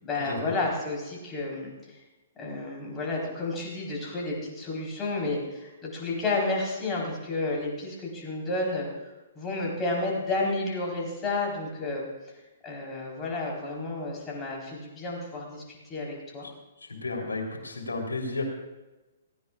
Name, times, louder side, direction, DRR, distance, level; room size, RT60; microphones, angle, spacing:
voice 1, 0.0-2.0 2.3-12.1 12.6-16.5, left 2 dB, 20° left, -3 dB, 4.4 m, -31 dB
voice 2, 16.9-18.4, left 3 dB, 75° left, 0 dB, 3.6 m, -32 dB
18.0 x 16.5 x 2.5 m, 1.1 s
figure-of-eight pair, 120°, 0 cm